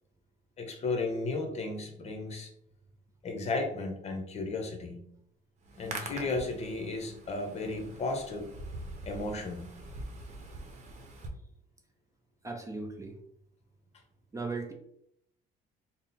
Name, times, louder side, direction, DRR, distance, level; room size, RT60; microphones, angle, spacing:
voice 1, 0.6-2.5 3.2-5.1 5.8-8.5 9.1-9.7, left 3 dB, 40° left, 4 dB, 0.8 m, -34 dB
Hands, 5.6-11.3, right 2 dB, 45° right, 0.9 m, -44 dB
voice 2, 12.4-13.2 14.3-14.7, right 3 dB, 20° right, 3 dB, 0.5 m, -37 dB
3.7 x 2.0 x 4.1 m, 0.72 s
cardioid pair, 110°, 17 cm